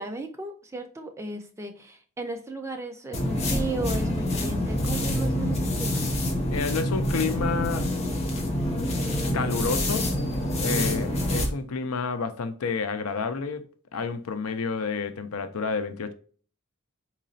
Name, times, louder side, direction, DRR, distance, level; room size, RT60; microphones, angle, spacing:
voice 1, 0.0-6.1, right 2 dB, 15° right, 0.4 m, -35 dB
sound 1, 3.1-11.5, left 1 dB, 30° left, 0.7 m, -26 dB
voice 2, 6.5-7.9 9.3-10.1 10.6-16.1, left 4 dB, 85° left, 0.5 m, -30 dB
3.9 x 3.0 x 2.6 m
head